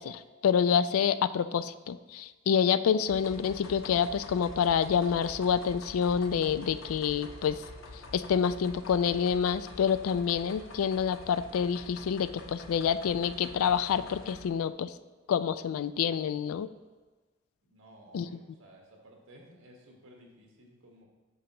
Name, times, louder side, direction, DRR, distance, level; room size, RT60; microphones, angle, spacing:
voice 1, 0.0-7.6 8.1-14.9 15.3-16.7 18.1-18.3, left 7 dB, 85° left, 14 dB, 0.3 m, -27 dB
sound 1, 3.1-14.5, left 2 dB, 70° left, 0.8 m, -47 dB
voice 2, 17.6-21.0, right 1 dB, 80° right, 0 dB, 1.4 m, -55 dB
8.3 x 5.7 x 2.9 m, 1.3 s
head